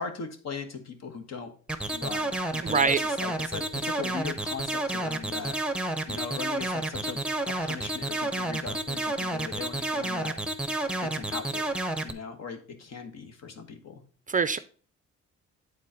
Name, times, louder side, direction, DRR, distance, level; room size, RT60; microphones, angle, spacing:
voice 1, 0.0-1.5 1.9-7.2 7.6-10.7 11.0-11.6 12.0-14.0, left 5 dB, 60° left, 1.4 m, -39 dB
sound 1, 1.7-12.1, right 2 dB, 5° right, 0.8 m, -30 dB
voice 2, 2.6-3.0 14.3-14.6, right 5 dB, 25° right, 0.4 m, -23 dB
8.5 x 4.0 x 4.9 m
cardioid pair, 90°, 30 cm